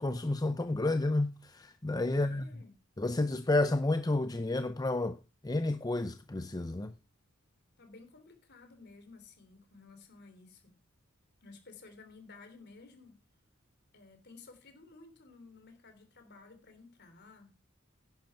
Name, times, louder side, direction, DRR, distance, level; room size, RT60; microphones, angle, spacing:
voice 1, 0.0-2.5 3.0-5.2 5.4-6.9, left 2 dB, 20° left, 0.6 m, -30 dB
voice 2, 2.1-2.7 7.8-10.8 11.4-13.2 13.9-17.6, left 3 dB, 55° left, 3.4 m, -54 dB
11.0 x 10.5 x 4.5 m
head